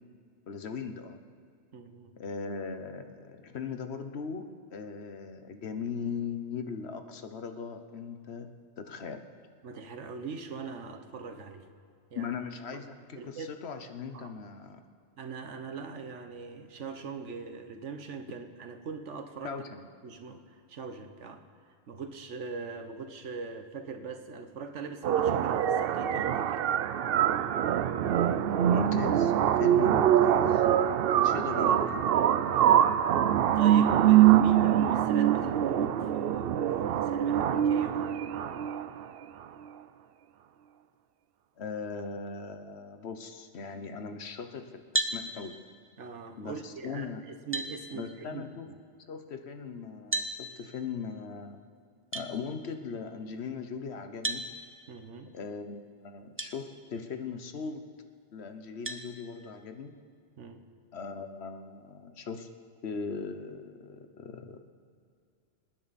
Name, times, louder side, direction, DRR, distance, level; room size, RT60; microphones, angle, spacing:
voice 1, 0.5-1.2 2.2-9.2 12.1-14.8 19.4-19.8 28.7-30.6 31.0-32.1 41.6-45.6 46.4-47.2 47.9-48.7 49.1-51.6 52.1-54.5 55.3-57.9 58.3-59.9 60.9-62.5 62.8-64.6, left 5 dB, 65° left, 8 dB, 1.2 m, -39 dB
voice 2, 1.7-2.1 9.6-11.7 12.1-12.3 12.7-12.8 13.2-13.5 14.1-14.3 15.2-19.6 20.0-21.5 21.9-26.7 32.5-33.1 33.5-38.3 46.0-48.8 54.9-55.3 60.4-60.6, right 4 dB, 85° right, 7 dB, 1.4 m, -41 dB
sound 1, 25.0-39.0, right 10 dB, 65° right, 0.7 m, -24 dB
sound 2, 44.9-45.2 46.9-47.0 47.5-47.7 50.1-50.3 52.1-52.3 54.2-54.5 56.4-56.5 57.2-57.3 58.9-59.1, right 2 dB, 15° right, 0.6 m, -31 dB
26.5 x 10.0 x 4.2 m, 2.3 s
omnidirectional pair, 1.2 m